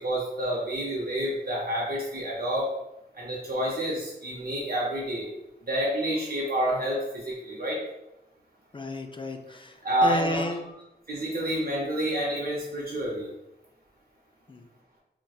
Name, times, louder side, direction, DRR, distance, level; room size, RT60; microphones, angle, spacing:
voice 1, 0.0-2.6 3.2-5.3 5.7-7.8 9.8-10.4 11.1-13.3, right 1 dB, 55° right, -4 dB, 0.6 m, -28 dB
voice 2, 8.7-10.6 14.5-14.7, left 1 dB, 30° left, 5 dB, 0.3 m, -32 dB
4.0 x 2.1 x 2.3 m, 0.91 s
wide cardioid pair, 80°, 18 cm